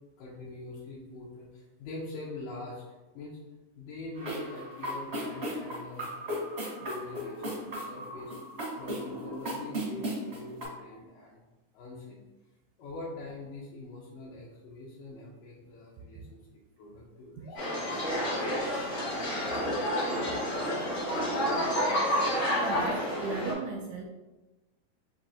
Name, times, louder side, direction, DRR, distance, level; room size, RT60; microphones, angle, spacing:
voice 1, 0.2-2.8 3.1-3.4 3.8-6.5 6.8-11.4 11.7-12.2 12.8-19.1 21.6-22.1, left 2 dB, 80° left, -5 dB, 2.2 m, -44 dB
sound 1, 4.1-10.6, equal, 65° right, 0.6 m, -36 dB
sound 2, 17.5-23.5, equal, 60° left, 0.8 m, -29 dB
voice 2, 22.7-24.1, right 4 dB, 80° right, 0 dB, 1.8 m, -37 dB
6.0 x 2.7 x 2.8 m, 1.1 s
omnidirectional pair, 3.8 m